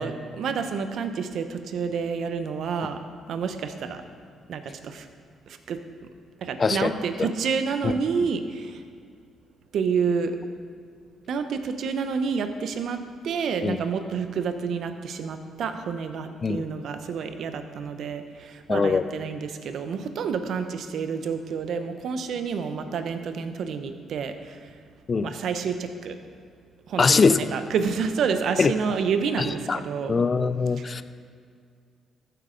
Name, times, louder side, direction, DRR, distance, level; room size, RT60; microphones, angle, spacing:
voice 1, 0.0-3.0 3.3-4.0 4.5-5.1 5.5-5.8 6.4-8.8 9.7-10.3 11.3-13.0 13.2-24.8 25.2-26.2 26.9-30.2 30.8-31.0, right 6 dB, 70° right, 8 dB, 0.8 m, -29 dB
voice 2, 6.6-6.9 7.8-7.9 13.6-13.8 16.4-16.6 18.7-19.0 25.1-25.3 27.0-27.4 28.6-28.7 29.4-29.8 30.1-31.0, left 4 dB, 35° left, 14 dB, 0.4 m, -22 dB
14.0 x 7.7 x 3.9 m, 2.2 s
cardioid pair, 90°, 0 cm